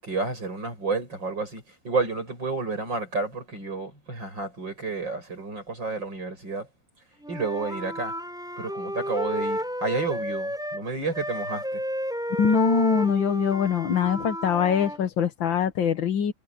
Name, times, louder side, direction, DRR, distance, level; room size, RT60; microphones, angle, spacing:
voice 1, 0.0-6.7 7.3-8.1 8.6-11.8, right 3 dB, 75° right, 8.9 m, -30 dB
Wind instrument woodwind instrument, 7.2-10.9 11.1-15.0, equal, ahead, 7.8 m, -32 dB
voice 2, 12.3-16.3, left 6 dB, 90° left, 2.1 m, -23 dB
omnidirectional pair, 2.0 m